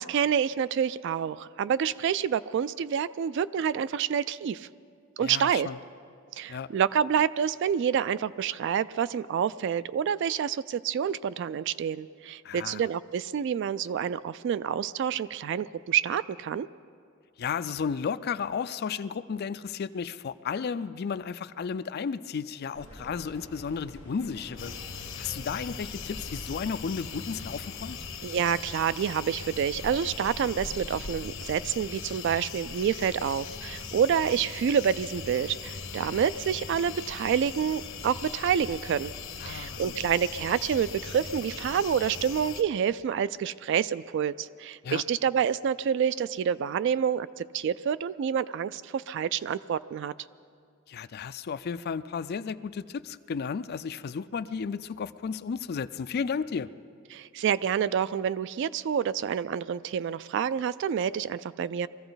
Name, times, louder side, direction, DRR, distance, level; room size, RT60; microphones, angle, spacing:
voice 1, 0.0-4.7 5.2-5.7 6.4-16.7 28.2-39.1 39.5-50.1 57.1-61.9, right 8 dB, 60° right, 17 dB, 0.3 m, -28 dB
voice 2, 5.2-5.8 6.5-6.7 12.4-12.8 17.4-28.0 39.4-40.0 44.8-45.0 50.9-56.7, left 6 dB, 50° left, 14 dB, 0.4 m, -33 dB
sound 1, 22.7-28.1, equal, 35° right, 2.7 m, -47 dB
sound 2, 24.6-42.6, left 5 dB, 75° left, 1.1 m, -40 dB
22.5 x 15.0 x 4.0 m, 2.3 s
head